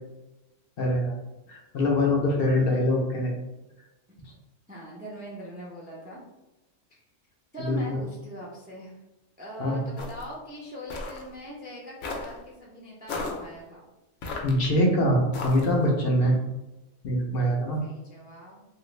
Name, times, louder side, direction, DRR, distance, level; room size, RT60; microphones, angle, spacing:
voice 1, 0.8-1.2 1.5-3.3 7.6-8.0 9.6-9.8 14.4-16.3 17.0-17.8, left 1 dB, 60° left, -1 dB, 0.7 m, -24 dB
voice 2, 4.7-6.2 6.9-7.0 7.5-8.9 9.4-13.8 16.1-16.4 17.8-18.7, right 1 dB, 10° right, -4 dB, 0.4 m, -41 dB
sound 1, 10.0-10.3 10.9-11.2 12.0-12.4 13.1-13.4 14.2-14.8 15.3-15.8, left 3 dB, 80° left, 1.0 m, -34 dB
2.9 x 2.4 x 3.1 m, 1.0 s
omnidirectional pair, 1.3 m